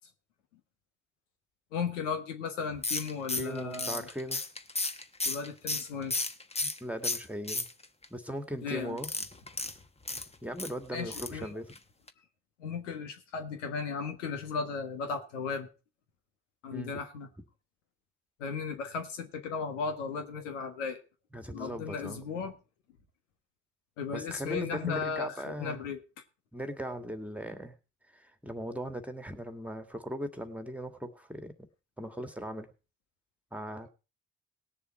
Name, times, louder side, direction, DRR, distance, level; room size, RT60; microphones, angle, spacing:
voice 1, 1.7-4.1 5.2-6.2 8.6-9.0 10.9-11.5 12.6-15.7 16.6-17.3 18.4-21.0 21.5-22.5 24.0-26.0, left 5 dB, 90° left, 1.5 m, -35 dB
sound 1, 2.8-6.8 7.0-8.0 9.0-10.7 11.1-11.4 11.7-11.8 12.1-12.2, left 2 dB, 15° left, 1.2 m, -33 dB
voice 2, 3.3-4.4 6.6-7.7 8.1-9.1 10.4-11.7 16.7-17.0 21.3-22.2 24.1-25.9 26.5-27.8 28.1-31.7 32.0-32.7 33.5-33.9, equal, 5° right, 2.0 m, -39 dB
18.5 x 6.9 x 4.4 m
hypercardioid pair, 50°, 36 cm